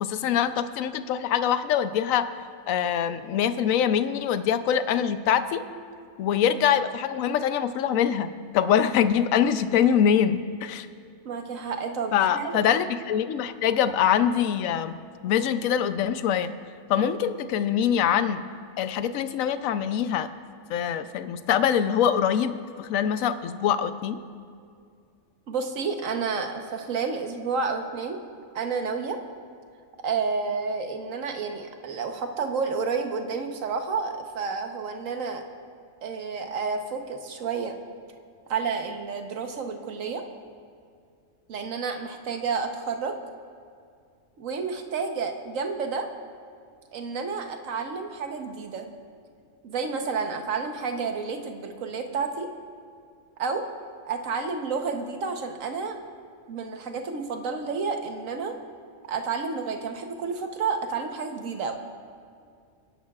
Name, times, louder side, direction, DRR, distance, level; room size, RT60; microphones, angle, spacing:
voice 1, 0.0-2.3 2.7-5.6 6.2-8.3 8.5-10.9 12.1-15.0 15.2-16.5 16.9-18.4 18.8-20.3 20.7-24.2, left 8 dB, 80° left, 11 dB, 1.0 m, -24 dB
voice 2, 11.2-12.6 25.5-28.2 28.5-29.2 30.0-35.4 36.0-37.7 38.5-40.2 41.5-43.2 44.4-46.1 46.9-48.9 49.6-52.5 53.4-53.7 54.0-56.0 56.5-58.5 59.1-61.7, right 5 dB, 75° right, 5 dB, 1.4 m, -30 dB
29.5 x 11.0 x 2.4 m, 2.3 s
omnidirectional pair, 1.4 m